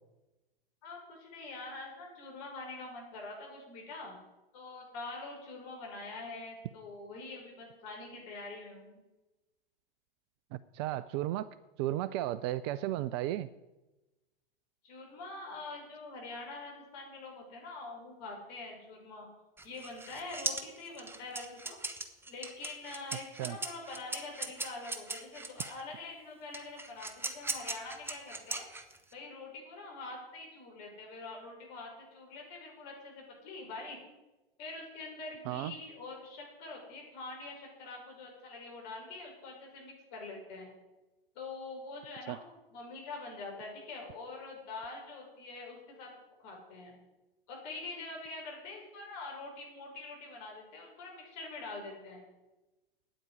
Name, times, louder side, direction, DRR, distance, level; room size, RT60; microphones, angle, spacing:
voice 1, 0.8-4.2 4.5-9.0 14.8-19.3 19.6-21.8 22.3-28.7 29.1-34.0 34.6-40.7 41.3-46.1 46.4-46.9 47.5-52.2, left 3 dB, 45° left, 0 dB, 6.0 m, -45 dB
voice 2, 10.5-11.5 11.8-13.5 23.4-23.6 35.5-35.7 42.3-42.4, right 14 dB, 30° right, 16 dB, 0.4 m, -34 dB
sound 1, 19.6-25.8 26.5-29.1, right 2 dB, 10° right, 1.2 m, -39 dB
9.4 x 9.0 x 9.9 m, 1.1 s
figure-of-eight pair, 100°, 29 cm